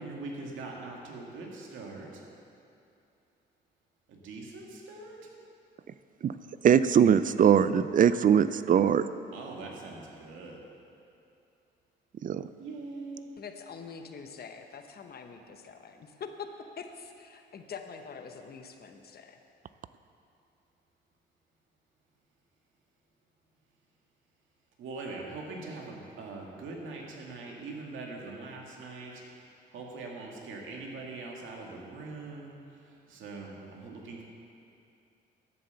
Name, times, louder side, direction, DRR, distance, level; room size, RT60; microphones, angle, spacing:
voice 1, 0.0-2.1 4.1-5.2 9.3-10.6 12.6-13.3 24.8-29.1 29.7-32.5 33.1-34.2, right 3 dB, 80° right, -1 dB, 2.1 m, -42 dB
voice 2, 6.6-9.1 12.2-12.5, right 8 dB, 45° right, 13 dB, 0.5 m, -21 dB
voice 3, 13.4-16.5 16.8-19.4, left 6 dB, 50° left, 6 dB, 1.0 m, -44 dB
12.0 x 7.7 x 6.9 m, 2.6 s
cardioid pair, 90°, 20 cm